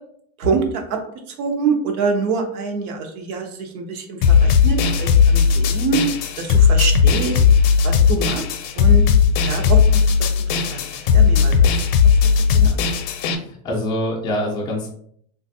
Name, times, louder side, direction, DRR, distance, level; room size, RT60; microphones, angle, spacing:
voice 1, 0.4-1.0 1.4-6.1 6.4-7.4 7.8-8.4 8.8-9.0 9.5-10.0 10.5-10.8 11.1-11.7 12.5-13.0, right 4 dB, 85° right, 4 dB, 0.8 m, -25 dB
sound 1, 4.2-13.4, left 6 dB, 65° left, 0.5 m, -16 dB
voice 2, 13.4-14.9, left 1 dB, 10° left, -3 dB, 0.3 m, -25 dB
3.1 x 2.4 x 2.6 m, 0.64 s
supercardioid pair, 145°, 43 cm